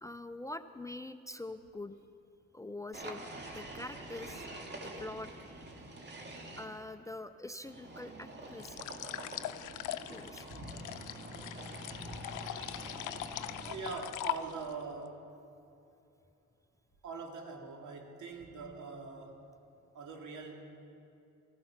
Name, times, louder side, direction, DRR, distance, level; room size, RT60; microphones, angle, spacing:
voice 1, 0.0-1.9 2.5-3.2 3.5-4.4 4.8-5.3 6.6-8.8 10.1-10.5, left 2 dB, 10° left, 10 dB, 0.4 m, -44 dB
sound 1, 2.9-6.6 7.6-14.0, right 1 dB, 35° right, 2.2 m, -46 dB
sound 2, 8.6-14.8, left 13 dB, 85° left, 0.6 m, -41 dB
voice 2, 13.7-15.2 17.0-19.4 19.9-20.6, right 4 dB, 75° right, 1 dB, 2.5 m, -43 dB
16.0 x 14.0 x 5.8 m, 2.7 s
cardioid pair, 90°, 30 cm